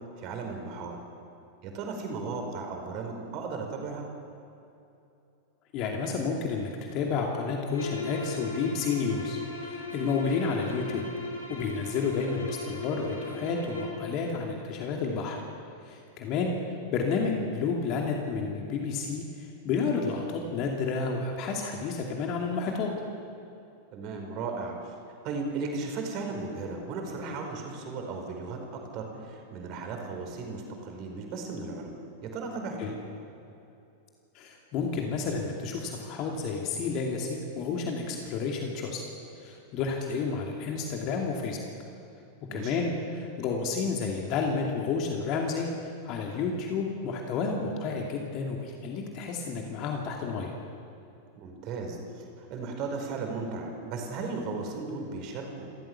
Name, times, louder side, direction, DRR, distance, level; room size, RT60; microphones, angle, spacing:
voice 1, 0.2-1.0 1.6-4.1 23.9-24.9 25.2-32.9 42.5-42.8 51.4-55.7, right 4 dB, 40° right, 3 dB, 4.7 m, -36 dB
voice 2, 5.7-11.0 11.5-15.4 15.8-22.9 32.8-32.9 34.3-39.0 39.4-41.6 42.5-50.5, left 4 dB, 40° left, 0 dB, 2.5 m, -31 dB
sound 1, 7.7-14.0, left 3 dB, 75° left, 6.6 m, -38 dB
29.0 x 14.0 x 7.2 m, 2.8 s
figure-of-eight pair, 90°, 0 cm